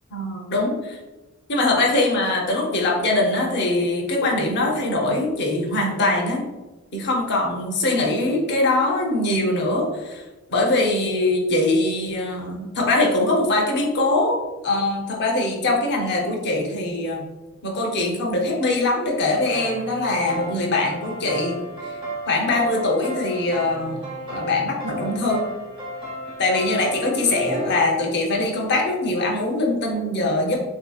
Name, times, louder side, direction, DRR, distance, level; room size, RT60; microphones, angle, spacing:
voice 1, 0.1-0.7 1.5-6.5 6.9-10.2 10.5-14.4 14.6-17.2 17.6-21.5 21.8-22.0 22.3-24.0 24.3-25.4 26.4-30.6, left 2 dB, 55° left, -1 dB, 0.7 m, -22 dB
sound 1, 19.4-27.8, right 1 dB, 25° right, 0.8 m, -33 dB
3.7 x 2.7 x 2.3 m, 1.1 s
head